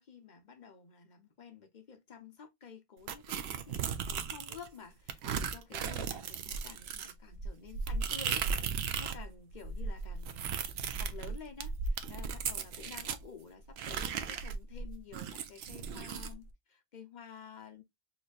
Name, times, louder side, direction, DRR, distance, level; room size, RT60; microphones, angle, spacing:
voice 1, 0.0-8.5 9.0-17.8, left 6 dB, 50° left, 0.9 m, -51 dB
sound 1, 3.1-4.7 5.1-9.2 9.5-13.2 13.8-16.3, right 6 dB, 80° right, 0.8 m, -36 dB
4.4 x 2.6 x 2.4 m
omnidirectional pair, 1.1 m